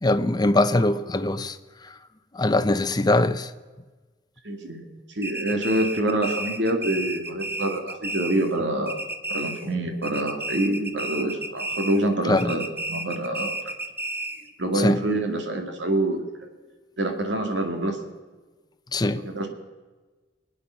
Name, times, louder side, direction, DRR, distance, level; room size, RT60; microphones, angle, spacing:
voice 1, 0.0-1.6 1.8-1.9 2.3-3.5 12.3-12.5 14.7-15.0 18.9-19.3, left 2 dB, 25° left, 0.6 m, -22 dB
voice 2, 4.4-4.9 5.2-9.0 9.3-13.5 14.6-16.2 17.0-18.0 19.2-19.5, right 1 dB, 80° right, 2.2 m, -26 dB
sound 1, 5.2-8.6 8.9-9.8 10.0-12.1 12.4-14.5, right 1 dB, 15° right, 0.9 m, -32 dB
24.0 x 9.4 x 5.7 m
head